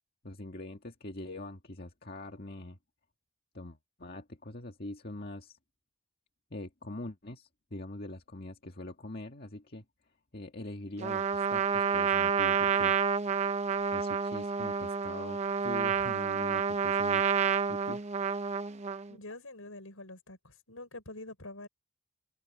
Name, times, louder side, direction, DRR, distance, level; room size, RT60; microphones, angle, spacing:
voice 1, 0.2-2.8 3.5-5.6 6.5-9.8 10.3-13.0 13.7-17.4 17.7-18.0, left 1 dB, 45° left, 1.9 m, -43 dB
Trumpet, 11.0-19.1, right 6 dB, 30° right, 0.6 m, -29 dB
voice 2, 19.1-21.7, left 2 dB, 70° left, 6.0 m, -46 dB
head